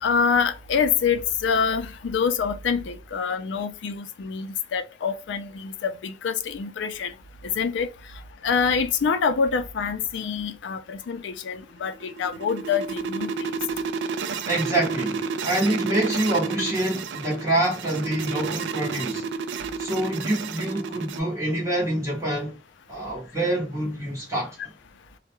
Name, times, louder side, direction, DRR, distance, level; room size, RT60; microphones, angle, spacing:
voice 1, 0.0-7.1 7.6-7.9 8.4-13.6, left 6 dB, 80° left, 0.4 m, -26 dB
sound 1, 11.8-21.2, right 6 dB, 80° right, 0.3 m, -31 dB
voice 2, 14.4-19.3 19.8-22.6 22.9-24.7, right 1 dB, 15° right, 0.8 m, -26 dB
2.2 x 2.1 x 2.9 m
head